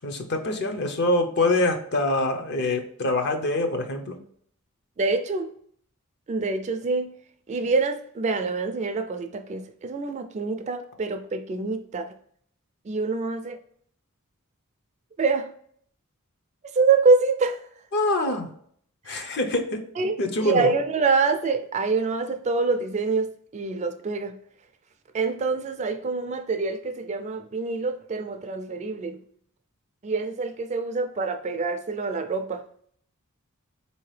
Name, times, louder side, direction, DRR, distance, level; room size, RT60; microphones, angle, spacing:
voice 1, 0.0-4.2 17.9-18.5 19.1-19.8 20.2-20.7, left 2 dB, 50° left, 5 dB, 0.6 m, -25 dB
voice 2, 5.0-5.5 6.3-7.1 7.5-12.1 12.9-13.6 15.2-15.5 16.7-17.6 19.1-19.3 20.0-20.1 20.4-24.3 25.1-29.2 30.0-32.6, right 4 dB, 30° right, 7 dB, 0.3 m, -25 dB
4.0 x 2.8 x 3.2 m, 0.62 s
head